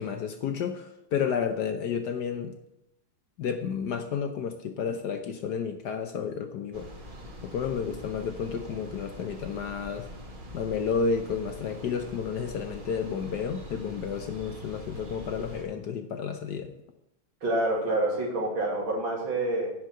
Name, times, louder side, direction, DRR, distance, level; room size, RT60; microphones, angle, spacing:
voice 1, 0.0-2.5 3.4-6.9 7.4-10.1 10.5-16.7, left 6 dB, 65° left, 7 dB, 1.2 m, -31 dB
sound 1, 6.7-15.6, equal, 30° right, 1.2 m, -44 dB
voice 2, 17.4-19.7, right 1 dB, 70° right, -2 dB, 3.3 m, -27 dB
10.5 x 4.7 x 7.6 m, 0.87 s
omnidirectional pair, 2.2 m